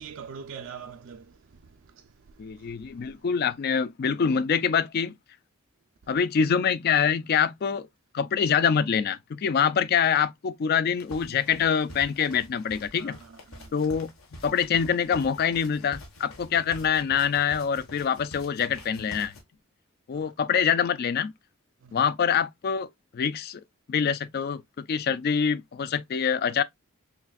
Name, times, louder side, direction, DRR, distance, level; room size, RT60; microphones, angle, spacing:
voice 1, 0.0-2.1 2.5-2.7 13.0-13.7 20.1-20.3 21.8-22.0, right 6 dB, 60° right, 0.4 m, -44 dB
voice 2, 2.4-5.1 6.1-7.9 8.1-13.2 13.7-14.1 14.4-19.3 20.1-21.3 21.9-23.6 23.9-26.6, left 7 dB, 45° left, 0.3 m, -25 dB
sound 1, 11.0-19.4, left 1 dB, 75° left, 1.3 m, -46 dB
5.7 x 2.5 x 2.2 m
head